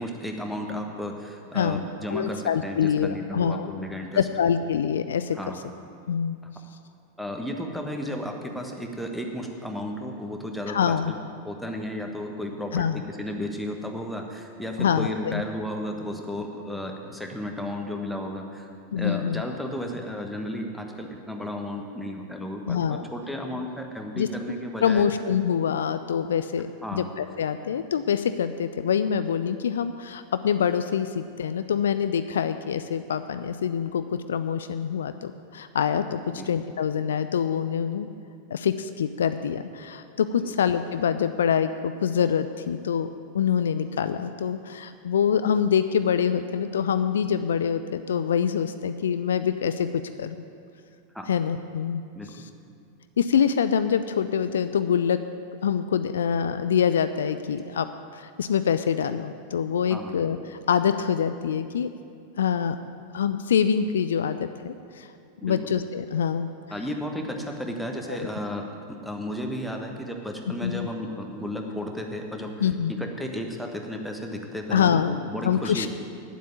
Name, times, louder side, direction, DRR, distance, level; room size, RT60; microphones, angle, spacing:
voice 1, 0.0-4.2 5.3-5.6 7.2-11.2 11.4-18.7 19.0-25.1 26.8-27.1 36.2-36.5 40.4-40.5 51.1-51.3 52.1-52.3 59.9-60.1 65.4-65.7 66.7-72.7 73.0-75.9, left 1 dB, ahead, 2 dB, 1.3 m, -33 dB
voice 2, 2.1-3.7 4.1-5.4 6.1-6.4 10.7-11.1 12.7-13.0 14.8-15.4 18.9-19.4 22.7-23.0 24.2-24.3 24.8-26.7 26.9-38.1 38.5-43.1 43.3-49.9 50.2-50.4 51.3-52.0 52.3-52.5 53.2-55.2 55.6-57.9 58.1-61.9 62.4-62.8 63.1-65.1 65.4-66.5 68.1-68.3 70.6-70.9 72.6-72.9 74.7-75.1 75.4-75.9, left 8 dB, 65° left, 11 dB, 0.4 m, -25 dB
9.3 x 8.1 x 9.1 m, 2.4 s
figure-of-eight pair, 90°, 0 cm